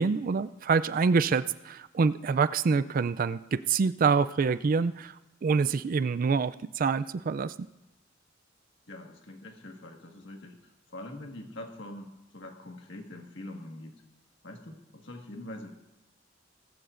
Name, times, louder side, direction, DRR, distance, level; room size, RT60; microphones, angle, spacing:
voice 1, 0.0-5.1 5.4-7.5, right 5 dB, 50° right, 15 dB, 0.4 m, -26 dB
voice 2, 8.9-14.0 14.4-15.7, left 1 dB, 70° left, 2 dB, 1.7 m, -44 dB
18.5 x 15.0 x 2.6 m, 0.95 s
head